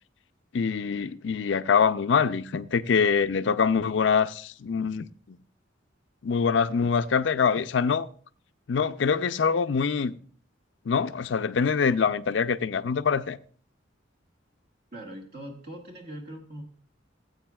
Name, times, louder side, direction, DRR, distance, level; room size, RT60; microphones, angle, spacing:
voice 1, 0.5-5.4 6.2-8.1 8.7-10.2 10.9-13.4, left 6 dB, 65° left, 0.5 m, -24 dB
voice 2, 14.9-16.6, right 1 dB, 55° right, 1.4 m, -41 dB
16.5 x 8.1 x 2.3 m
head